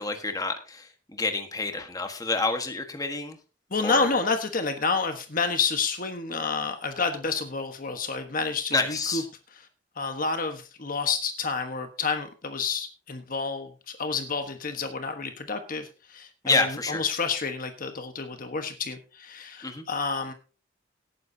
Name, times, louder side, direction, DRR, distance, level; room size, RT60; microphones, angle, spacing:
voice 1, 0.0-3.4 3.8-4.1 8.7-9.3 16.4-17.0 19.6-19.8, left 3 dB, 20° left, 6 dB, 1.5 m, -28 dB
voice 2, 3.7-9.2 10.0-20.3, left 4 dB, 50° left, 7 dB, 1.3 m, -29 dB
18.0 x 9.6 x 2.8 m, 0.34 s
head